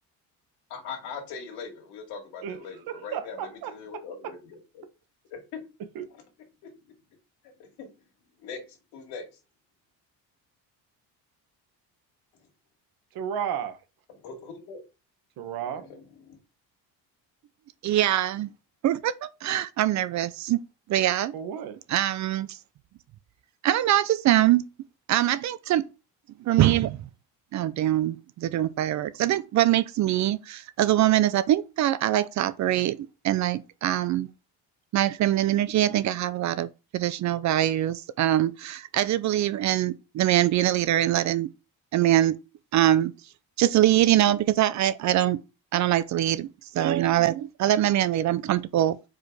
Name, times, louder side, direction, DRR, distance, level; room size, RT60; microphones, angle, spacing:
voice 1, 0.7-4.8 5.3-5.6 6.1-6.2 6.6-6.7 7.4-7.9 8.4-9.3 14.1-14.8 15.7-16.4, left 5 dB, 80° left, 2.5 m, -41 dB
voice 2, 2.9-4.0 5.9-6.1 13.1-13.8 15.4-15.9 21.3-21.8, right 8 dB, 60° right, 1.2 m, -33 dB
voice 3, 17.8-18.5 18.8-20.6 20.9-21.3 21.9-22.6 23.6-24.7 25.1-25.8 26.4-27.0 27.5-34.3 34.9-41.5 41.9-42.4 42.7-43.1 43.6-45.4 45.7-46.5 46.7-49.0, right 13 dB, 45° right, 0.5 m, -23 dB
4.9 x 4.6 x 4.8 m
cardioid pair, 145°, 40 cm